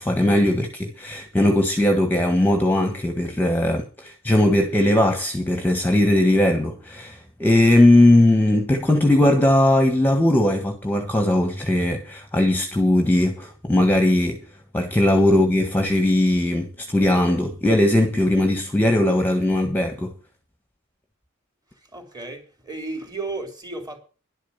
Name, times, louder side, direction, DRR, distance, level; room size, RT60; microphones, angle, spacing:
voice 1, 0.0-14.4 14.7-20.1, left 1 dB, 10° left, 1.4 m, -19 dB
voice 2, 21.8-24.0, right 3 dB, 20° right, 3.5 m, -34 dB
11.5 x 8.8 x 7.2 m
head